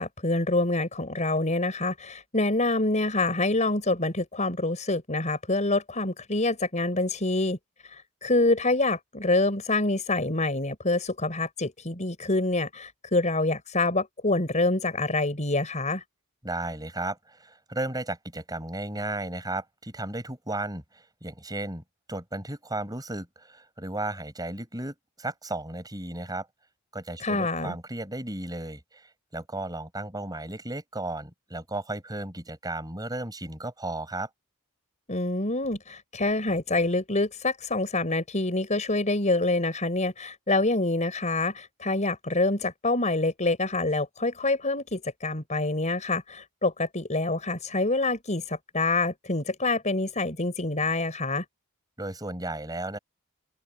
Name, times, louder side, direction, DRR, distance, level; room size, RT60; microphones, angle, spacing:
voice 1, 0.0-7.6 7.8-16.0 27.2-27.7 35.1-51.4, left 2 dB, 30° left, 5.6 m, -26 dB
voice 2, 16.4-21.8 22.1-26.5 26.9-34.3 52.0-53.0, right 2 dB, 15° right, 6.3 m, -34 dB
open air
head